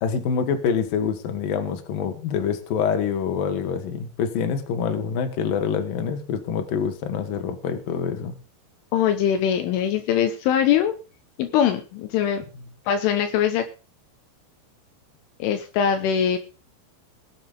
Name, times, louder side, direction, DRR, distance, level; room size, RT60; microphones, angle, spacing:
voice 1, 0.0-8.3, left 7 dB, 55° left, 7 dB, 3.1 m, -26 dB
voice 2, 8.9-10.9 11.4-12.4 12.9-13.7 15.4-16.4, left 9 dB, 75° left, 7 dB, 3.4 m, -22 dB
20.0 x 7.8 x 5.3 m, 0.35 s
omnidirectional pair, 5.9 m